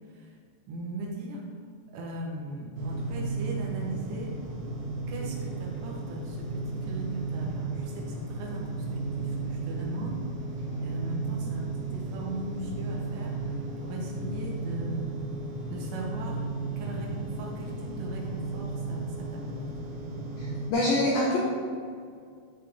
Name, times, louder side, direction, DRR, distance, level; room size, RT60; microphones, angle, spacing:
voice 1, 0.7-1.4 1.9-4.3 5.1-10.2 10.8-15.0 15.7-16.4 16.8-19.6, right 1 dB, 75° right, -2 dB, 3.3 m, -39 dB
sound 1, 2.8-20.7, right 3 dB, 90° right, 1.9 m, -34 dB
voice 2, 20.4-21.4, left 2 dB, 75° left, -4 dB, 2.2 m, -26 dB
12.0 x 5.4 x 3.4 m, 2.2 s
omnidirectional pair, 5.3 m